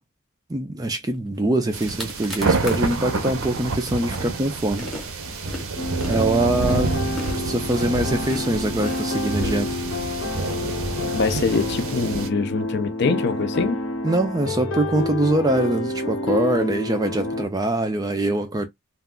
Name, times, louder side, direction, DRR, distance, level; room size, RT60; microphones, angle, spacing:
voice 1, 0.5-4.9 6.1-7.0 7.3-9.8 14.0-18.7, right 1 dB, 15° right, 0.3 m, -23 dB
sound 1, 1.4-1.5 1.7-3.0 3.4-10.2, left 1 dB, ahead, 0.8 m, -38 dB
sound 2, 1.7-12.3, right 3 dB, 75° right, 0.6 m, -28 dB
sound 3, 5.8-17.5, left 2 dB, 70° left, 0.8 m, -29 dB
voice 2, 11.1-13.8, left 4 dB, 50° left, 0.5 m, -24 dB
2.3 x 2.2 x 3.6 m
head